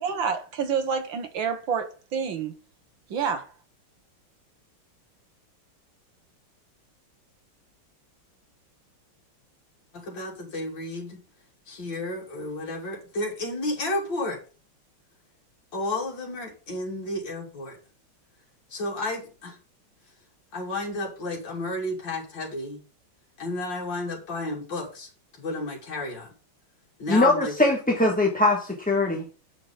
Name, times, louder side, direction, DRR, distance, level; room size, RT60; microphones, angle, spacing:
voice 1, 0.0-2.6 3.1-3.5, right 6 dB, 65° right, 2.0 m, -28 dB
voice 2, 9.9-11.2 11.7-14.4 15.7-17.8 18.7-19.6 20.5-22.8 23.4-26.3 27.0-27.5, left 2 dB, 60° left, 3.4 m, -32 dB
voice 3, 27.1-29.3, left 2 dB, 5° left, 1.0 m, -21 dB
8.7 x 6.1 x 5.0 m
omnidirectional pair, 2.3 m